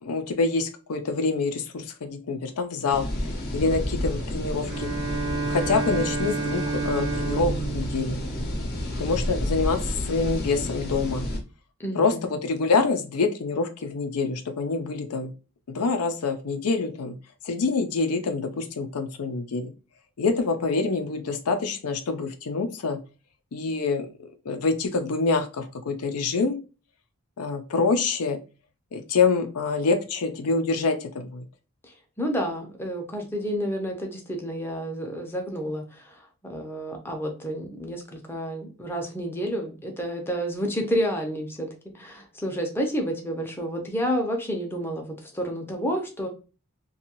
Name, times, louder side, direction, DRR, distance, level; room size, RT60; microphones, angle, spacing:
voice 1, 0.0-4.9 5.5-8.2 9.0-11.3 11.9-15.3 15.7-17.1 17.4-19.7 20.2-23.0 23.5-26.6 27.4-28.4 28.9-31.4, left 4 dB, 85° left, 8 dB, 0.5 m, -26 dB
sound 1, 2.9-11.4, left 1 dB, 45° left, 0.7 m, -30 dB
Bowed string instrument, 4.7-9.3, right 4 dB, 70° right, 0.4 m, -31 dB
voice 2, 11.8-12.3 32.2-36.0 36.4-41.7 41.9-45.0 45.3-46.3, equal, 10° left, 2 dB, 0.5 m, -30 dB
2.6 x 2.3 x 2.9 m, 0.33 s
head